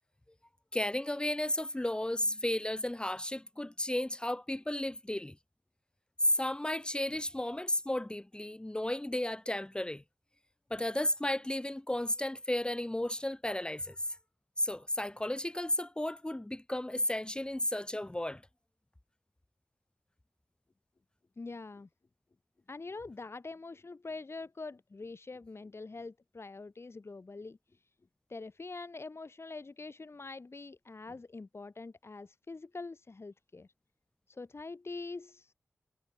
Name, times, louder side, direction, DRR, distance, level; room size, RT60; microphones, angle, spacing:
voice 1, 0.7-5.4 6.2-10.0 10.7-14.0 14.6-18.4, left 1 dB, 15° left, 1.1 m, -33 dB
voice 2, 21.4-21.9 22.7-27.6 28.3-33.7 34.3-35.5, left 3 dB, 50° left, 6.3 m, -44 dB
cardioid pair, 45°, 5 cm